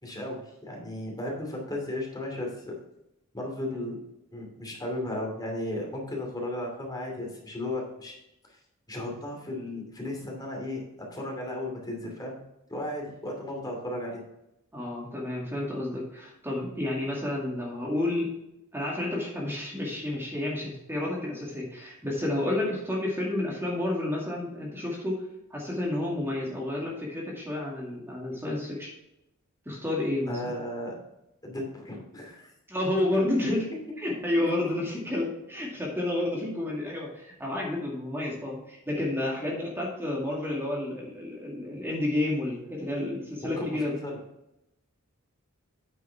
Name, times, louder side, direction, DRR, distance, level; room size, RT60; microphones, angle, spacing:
voice 1, 0.0-2.7 3.3-4.0 4.3-8.1 8.9-12.4 12.7-14.2 30.3-31.0 31.4-32.5 43.4-44.2, left 1 dB, 20° left, -1 dB, 2.6 m, -35 dB
voice 2, 14.7-18.3 18.7-25.2 25.5-28.9 29.7-30.5 32.7-33.6 34.0-44.0, left 1 dB, 10° right, -4 dB, 2.2 m, -30 dB
9.2 x 7.4 x 3.4 m, 0.87 s
head